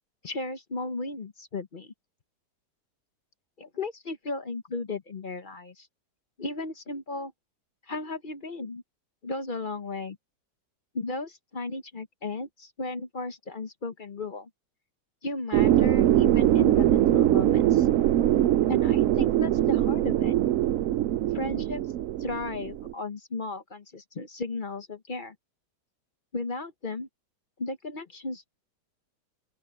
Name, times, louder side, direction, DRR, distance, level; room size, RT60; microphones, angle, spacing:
voice 1, 0.2-1.9 3.6-5.9 6.4-7.3 7.9-8.8 9.2-10.2 10.9-14.5 15.2-17.9 18.7-20.3 21.3-21.8 22.2-25.3 26.3-27.1 27.6-28.5, left 3 dB, 35° left, 0.9 m, -35 dB
sound 1, 15.5-22.9, right 12 dB, 70° right, 0.8 m, -22 dB
open air
omnidirectional pair, 1.8 m